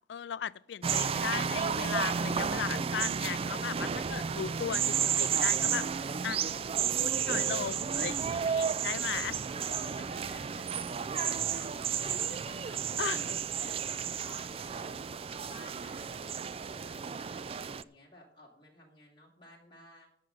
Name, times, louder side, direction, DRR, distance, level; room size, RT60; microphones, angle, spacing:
voice 1, 0.1-6.4 7.0-9.3 13.0-13.4 14.9-15.0, left 8 dB, 70° left, 0.3 m, -37 dB
sound 1, 0.8-17.8, right 7 dB, 30° right, 0.3 m, -32 dB
voice 2, 9.0-9.3 9.7-12.8 13.6-20.1, equal, 25° left, 2.4 m, -53 dB
14.5 x 5.7 x 6.5 m
head